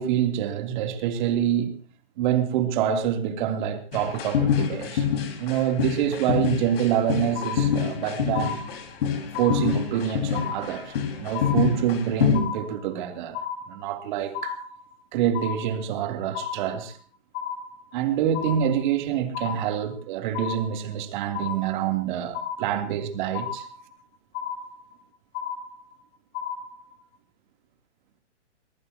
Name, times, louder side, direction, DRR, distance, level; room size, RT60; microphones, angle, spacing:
voice 1, 0.0-1.8 2.2-5.1 5.4-8.6 9.4-10.9 11.2-13.4 13.7-14.6 15.1-17.0 17.9-23.7, right 9 dB, 45° right, 3.1 m, -26 dB
sound 1, 3.9-12.4, left 8 dB, 55° left, 4.9 m, -26 dB
sound 2, 7.3-8.0 8.3-9.0 9.3-10.0 10.3-11.0 11.3-12.0 12.3-13.0 13.3-14.0 14.3-15.0 15.3-16.0 16.3-17.0 17.3-18.0 18.3-19.0 19.3-20.0 20.3-21.0 21.3-22.0 22.3-23.0 23.3-24.0 24.3-25.0 25.3-26.0 26.3-27.0, left 7 dB, 25° left, 2.3 m, -34 dB
23.0 x 21.0 x 2.9 m
hypercardioid pair, 145°, 35 cm